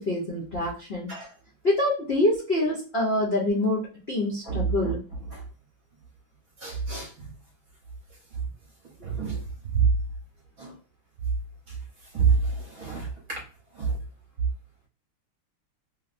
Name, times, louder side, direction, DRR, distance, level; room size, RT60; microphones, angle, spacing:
voice 1, 0.0-1.1 1.6-5.0 9.3-9.4, left 1 dB, 75° left, -5 dB, 0.5 m, -26 dB
voice 2, 4.4-4.9 5.3-5.4 6.6-7.1 9.0-9.9 10.6-10.8 11.7-11.8 12.1-13.4 13.7-14.0, right 6 dB, 55° right, -2 dB, 1.1 m, -27 dB
3.1 x 2.7 x 2.5 m, 0.38 s
omnidirectional pair, 2.3 m